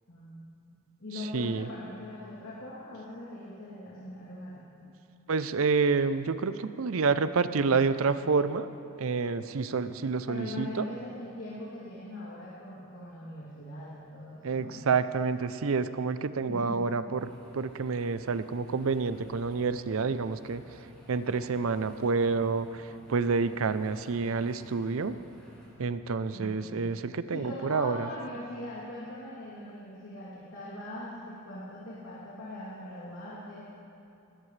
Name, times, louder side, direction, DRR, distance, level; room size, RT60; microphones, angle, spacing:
voice 1, 0.1-0.7 1.0-4.7 10.3-14.8 16.5-16.9 26.3-33.8, left 1 dB, 70° left, -8 dB, 2.9 m, -41 dB
voice 2, 1.3-1.7 5.3-8.7 9.0-10.8 14.4-20.6 21.1-25.2 25.8-28.1, right 4 dB, 70° right, 13 dB, 0.5 m, -28 dB
sound 1, 17.2-25.7, equal, 5° left, 4.4 m, -54 dB
20.5 x 16.5 x 3.3 m, 2.6 s
head